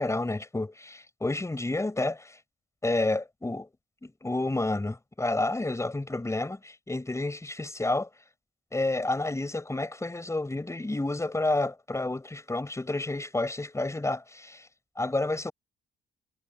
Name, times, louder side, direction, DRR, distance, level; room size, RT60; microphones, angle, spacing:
voice 1, 0.0-2.4 2.8-3.7 4.0-8.1 8.7-14.7 15.0-15.5, left 2 dB, 15° left, 4.7 m, -30 dB
cardioid pair, 90°, 20 cm